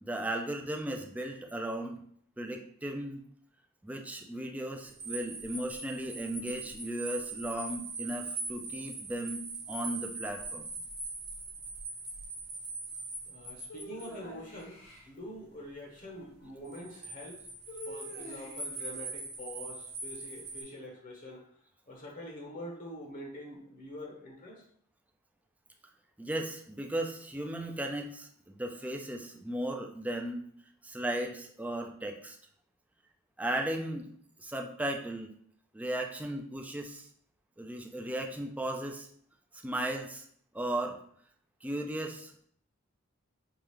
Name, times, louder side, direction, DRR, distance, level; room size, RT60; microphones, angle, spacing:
voice 1, 0.0-2.0 2.4-3.3 3.8-9.4 9.7-10.7 26.2-30.4 30.8-32.4 33.4-34.1 34.4-35.3 35.7-37.1 37.6-39.1 39.6-40.3 40.5-41.0 41.6-42.3, right 1 dB, 5° right, 2 dB, 0.4 m, -36 dB
sound 1, 4.8-14.1 16.6-20.6, right 3 dB, 55° right, 0.9 m, -41 dB
voice 2, 13.3-17.4 17.9-21.4 21.9-24.6, left 1 dB, 40° left, -1 dB, 0.8 m, -45 dB
sound 2, 13.7-15.1 17.7-18.8, equal, 70° left, 1.1 m, -46 dB
4.7 x 2.4 x 2.9 m, 0.63 s
head